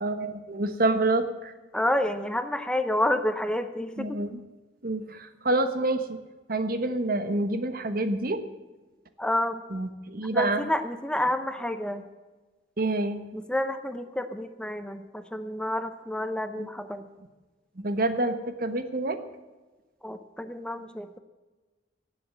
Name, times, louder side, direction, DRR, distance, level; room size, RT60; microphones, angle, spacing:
voice 1, 0.0-1.5 4.0-4.3 4.8-6.2 6.5-8.4 9.7-10.6 12.8-13.2 16.6-16.7 17.8-19.2, right 2 dB, 55° right, 9 dB, 1.2 m, -27 dB
voice 2, 1.7-4.2 9.2-9.6 10.3-12.0 13.3-17.1 20.0-21.2, left 1 dB, 5° left, 9 dB, 0.6 m, -29 dB
17.5 x 7.8 x 7.7 m, 1.2 s
head